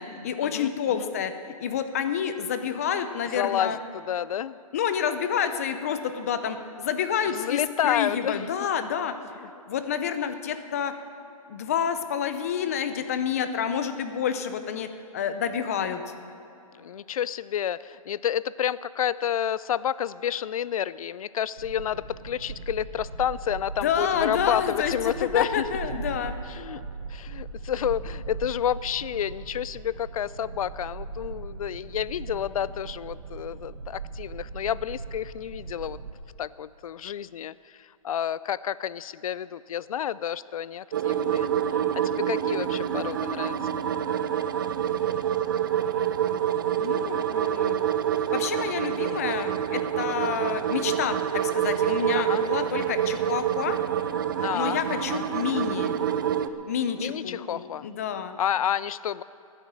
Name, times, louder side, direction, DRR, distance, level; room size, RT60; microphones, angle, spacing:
voice 1, 0.0-3.8 4.7-10.9 11.5-14.9 15.1-16.1 23.8-26.4 46.3-47.8 48.2-53.8 54.3-56.0 56.7-58.4, left 8 dB, 25° left, 10 dB, 0.6 m, -29 dB
voice 2, 3.3-4.6 7.3-8.5 16.8-25.7 26.5-36.0 36.4-41.5 41.9-43.6 52.1-52.4 54.4-55.2 57.0-57.9 58.4-59.2, left 10 dB, 70° left, 18 dB, 0.4 m, -30 dB
sound 1, 21.6-36.1, right 4 dB, 70° right, 1.4 m, -39 dB
sound 2, 40.9-56.5, right 10 dB, 35° right, 0.5 m, -27 dB
15.5 x 9.7 x 7.4 m, 2.9 s
hypercardioid pair, 170°, 19 cm